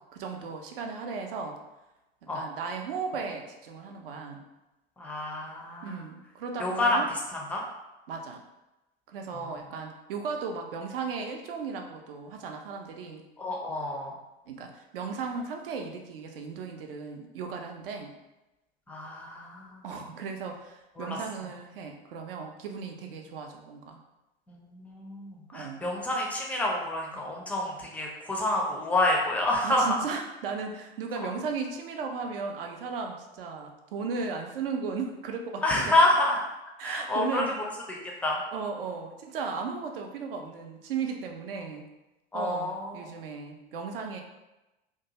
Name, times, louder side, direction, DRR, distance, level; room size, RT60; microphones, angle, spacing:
voice 1, 0.1-1.6 2.2-4.4 5.8-7.1 8.1-8.4 9.1-13.2 14.5-18.1 19.8-24.0 25.5-25.9 29.6-35.6 36.8-37.6 38.5-41.9 42.3-44.2, right 5 dB, 65° right, 3 dB, 0.5 m, -36 dB
voice 2, 5.0-6.0 6.6-7.6 9.3-9.5 13.4-14.1 18.9-19.8 21.0-21.2 24.5-29.9 35.6-36.4 36.8-38.0 38.2-38.4 42.3-43.1, left 1 dB, 5° left, -1 dB, 0.4 m, -28 dB
2.5 x 2.2 x 2.8 m, 0.99 s
figure-of-eight pair, 85°, 31 cm